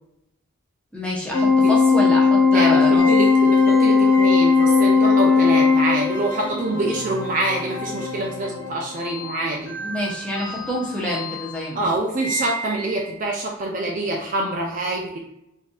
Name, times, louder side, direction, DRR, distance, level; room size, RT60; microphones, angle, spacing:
voice 1, 0.9-3.1 9.8-12.0, left 1 dB, 5° left, -5 dB, 0.8 m, -27 dB
Organ, 1.3-6.4, left 4 dB, 60° left, 0.6 m, -16 dB
sound 1, 3.0-13.1, left 1 dB, 85° left, 1.1 m, -32 dB
voice 2, 3.1-9.8 11.7-15.2, right 2 dB, 35° right, -1 dB, 0.4 m, -25 dB
4.1 x 2.6 x 2.3 m, 0.83 s
head